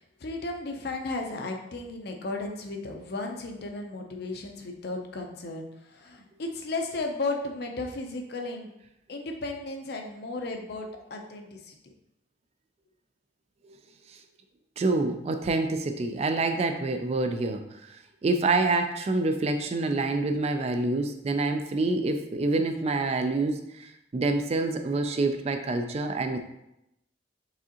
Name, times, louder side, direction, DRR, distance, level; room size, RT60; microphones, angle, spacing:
voice 1, 0.0-8.7 9.1-11.8, left 2 dB, 55° left, 3 dB, 0.6 m, -35 dB
voice 2, 14.8-26.4, right 3 dB, 35° right, 6 dB, 0.3 m, -27 dB
4.8 x 3.6 x 2.8 m, 0.84 s
head